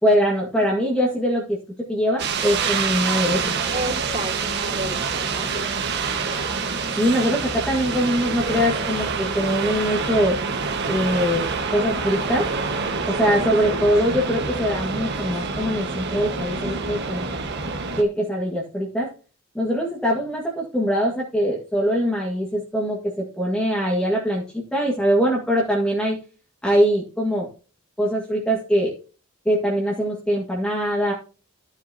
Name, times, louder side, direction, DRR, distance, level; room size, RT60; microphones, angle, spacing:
voice 1, 0.0-3.5 6.9-10.4 10.9-11.5 11.7-12.5 13.1-17.4 18.0-19.1 19.5-26.2 26.6-27.5 28.0-29.0 29.5-31.1, equal, 5° left, -3 dB, 1.8 m, -22 dB
sound 1, 2.2-18.0, right 4 dB, 50° right, 1.5 m, -26 dB
voice 2, 3.7-6.1 13.2-13.5, right 1 dB, 30° right, -1 dB, 3.8 m, -32 dB
13.0 x 8.1 x 2.9 m, 0.36 s
head